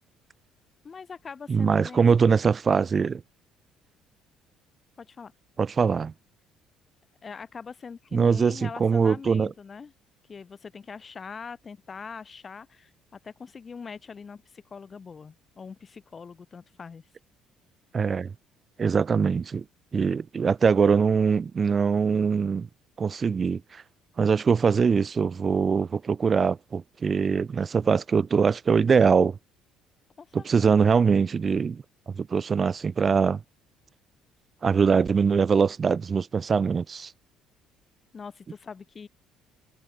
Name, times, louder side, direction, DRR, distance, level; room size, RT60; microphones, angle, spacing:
voice 1, 0.8-2.2 5.0-5.3 7.2-9.9 10.3-17.0 30.2-30.8 38.1-39.1, left 5 dB, 35° left, 4.4 m, -42 dB
voice 2, 1.5-3.2 5.6-6.1 8.1-9.5 17.9-18.3 18.8-19.6 19.9-22.7 23.0-23.8 24.2-29.4 30.3-33.4 34.6-37.1, right 5 dB, 35° right, 0.6 m, -23 dB
hypercardioid pair, 55°, 0 cm